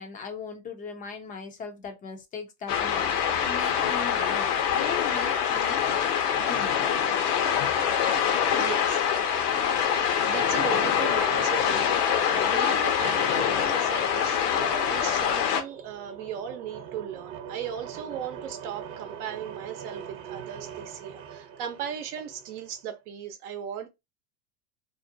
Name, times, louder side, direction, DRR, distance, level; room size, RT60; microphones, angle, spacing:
voice 1, 0.0-6.8, left 5 dB, 20° left, 0.3 m, -39 dB
sound 1, 2.7-15.6, left 8 dB, 85° left, 0.8 m, -25 dB
voice 2, 8.5-9.5 10.0-23.9, right 9 dB, 75° right, 0.7 m, -37 dB
sound 2, 15.1-22.8, right 8 dB, 40° right, 0.8 m, -43 dB
2.5 x 2.1 x 2.6 m
supercardioid pair, 115°, 45 cm